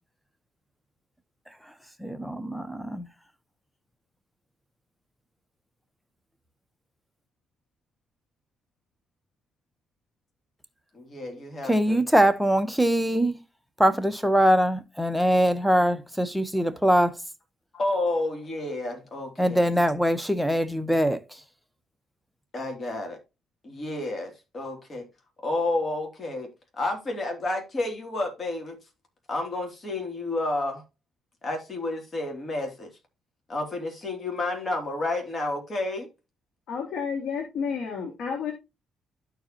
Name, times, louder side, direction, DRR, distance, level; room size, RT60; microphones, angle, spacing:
voice 1, 2.0-3.1 11.6-13.4 13.8-17.2 19.4-21.4, equal, ahead, 1.0 m, -23 dB
voice 2, 10.9-12.0 17.7-19.7 22.5-23.2 23.6-25.1 25.4-28.8 29.3-30.8 31.4-32.9 33.5-36.1, left 2 dB, 35° left, 2.9 m, -30 dB
voice 3, 36.7-38.5, left 6 dB, 70° left, 2.1 m, -31 dB
12.5 x 4.8 x 2.9 m
cardioid pair, 90°, 0 cm